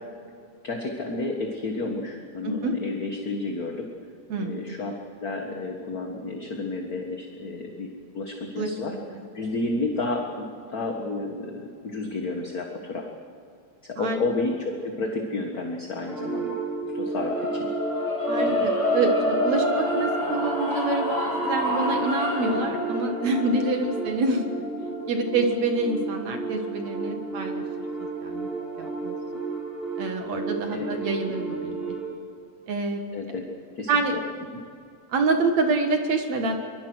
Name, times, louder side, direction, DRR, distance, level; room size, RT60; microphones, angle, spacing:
voice 1, 0.6-3.9 4.4-4.9 5.2-8.9 9.3-13.1 13.8-16.6 16.9-17.7 18.4-18.7 30.7-30.9 33.1-33.4 33.7-34.2 34.5-34.6, left 2 dB, 35° left, 2 dB, 1.7 m, -31 dB
voice 2, 4.3-4.6 8.6-8.7 9.1-9.2 14.0-14.2 18.3-24.4 25.1-27.6 28.2-28.5 28.8-29.2 30.0-32.0 32.7-33.0 33.9-34.1 35.1-36.6, right 3 dB, 60° right, 4 dB, 2.8 m, -26 dB
sound 1, 16.1-32.1, right 4 dB, ahead, 7.1 m, -32 dB
sound 2, 17.1-27.3, left 1 dB, 50° left, 6.7 m, -29 dB
24.5 x 22.5 x 6.3 m, 2.4 s
omnidirectional pair, 3.6 m